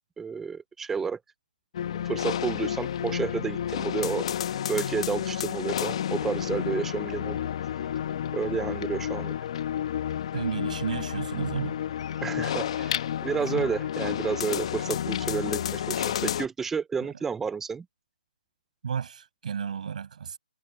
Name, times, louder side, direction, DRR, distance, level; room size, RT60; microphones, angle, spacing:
voice 1, 0.2-1.2 2.1-4.3 4.7-7.4 8.3-9.3 12.2-17.8, right 6 dB, 5° right, 0.7 m, -31 dB
sound 1, 1.7-16.5, left 10 dB, 40° left, 1.3 m, -30 dB
voice 2, 10.3-11.8 18.8-20.4, right 7 dB, 50° right, 6.8 m, -32 dB
hypercardioid pair, 160°, 5 cm